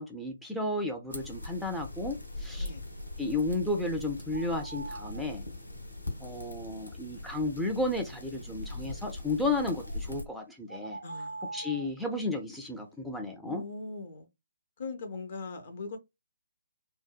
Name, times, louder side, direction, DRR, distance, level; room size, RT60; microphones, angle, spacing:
voice 1, 0.0-2.7 3.2-5.4 6.2-11.0 11.5-13.6, left 2 dB, ahead, 0.3 m, -33 dB
sound 1, 1.1-10.2, left 2 dB, 80° left, 0.8 m, -41 dB
sound 2, 4.3-5.2 9.8-10.0 10.7-11.9, right 2 dB, 80° right, 0.4 m, -42 dB
voice 2, 11.0-11.7 13.4-14.3 14.8-16.0, left 3 dB, 45° left, 0.6 m, -40 dB
2.6 x 2.1 x 2.2 m
figure-of-eight pair, 140°, 0 cm